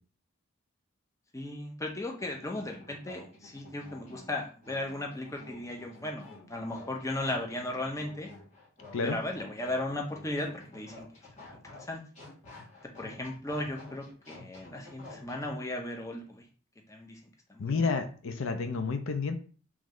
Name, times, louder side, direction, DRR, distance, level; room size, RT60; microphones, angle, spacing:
voice 1, 1.3-8.3 9.0-11.1 11.4-12.0 13.0-16.5 16.9-17.2 17.5-17.9, left 1 dB, 15° left, 2 dB, 0.6 m, -36 dB
sound 1, 2.2-15.5, left 2 dB, 35° left, 1.6 m, -51 dB
voice 2, 17.6-19.4, left 4 dB, 80° left, 8 dB, 0.5 m, -30 dB
3.1 x 3.1 x 3.7 m, 0.39 s
head